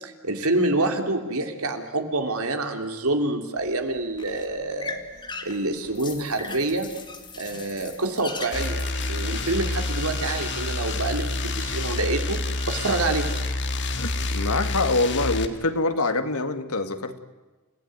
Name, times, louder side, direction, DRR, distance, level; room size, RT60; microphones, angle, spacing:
voice 1, 0.0-5.0 5.4-6.9 7.4-8.8 9.1-13.3, right 2 dB, 80° right, 5 dB, 3.1 m, -27 dB
sound 1, 3.6-9.8, left 3 dB, 20° left, 2.1 m, -40 dB
sound 2, 8.2-13.4, right 6 dB, 40° right, 4.0 m, -44 dB
sound 3, 8.5-15.5, left 2 dB, 55° left, 1.9 m, -28 dB
voice 2, 14.0-17.2, left 2 dB, 85° left, 8 dB, 2.1 m, -25 dB
29.5 x 16.5 x 9.5 m, 1.2 s
head